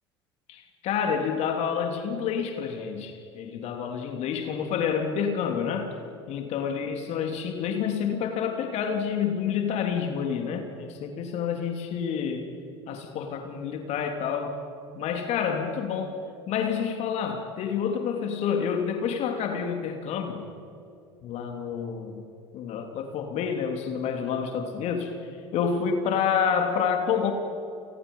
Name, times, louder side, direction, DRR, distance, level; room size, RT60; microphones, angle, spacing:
voice 1, 0.5-5.9 6.3-12.5 12.9-14.6 14.9-16.2 16.5-20.4 21.2-22.2 22.5-25.2 25.5-27.3, left 7 dB, 55° left, 4 dB, 3.2 m, -28 dB
29.5 x 29.5 x 5.6 m, 2.6 s
hypercardioid pair, 70°, 13 cm